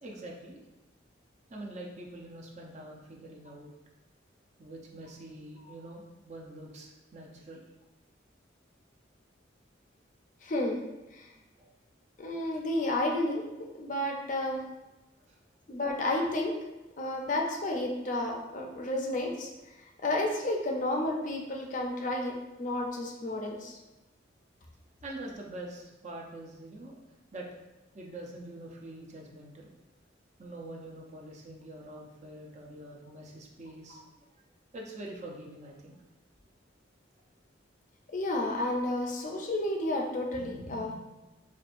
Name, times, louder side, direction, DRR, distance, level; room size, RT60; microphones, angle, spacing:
voice 1, 0.0-0.7 1.5-3.7 4.6-7.6 11.6-11.7 15.3-15.4 25.0-27.0 27.3-27.5 27.9-29.7 30.4-34.3 34.7-36.0, right 1 dB, 40° right, -1 dB, 0.5 m, -45 dB
voice 2, 10.4-10.8 11.1-11.3 12.2-13.4 13.8-14.6 15.7-16.5 17.0-19.5 20.0-23.8 38.1-41.0, left 1 dB, 45° left, 1 dB, 0.5 m, -31 dB
4.6 x 2.6 x 2.5 m, 1.0 s
head